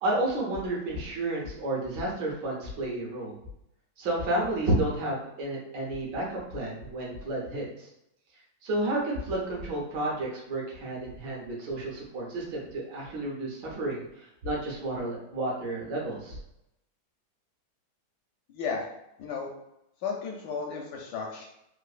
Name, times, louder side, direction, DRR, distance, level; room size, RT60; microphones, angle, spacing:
voice 1, 0.0-3.3 4.0-7.9 8.6-16.4, right 1 dB, 65° right, -3 dB, 1.5 m, -31 dB
voice 2, 18.5-18.9 19.2-19.5 20.0-21.5, left 5 dB, 75° left, 0 dB, 1.0 m, -34 dB
3.8 x 2.5 x 2.4 m, 0.84 s
omnidirectional pair, 2.2 m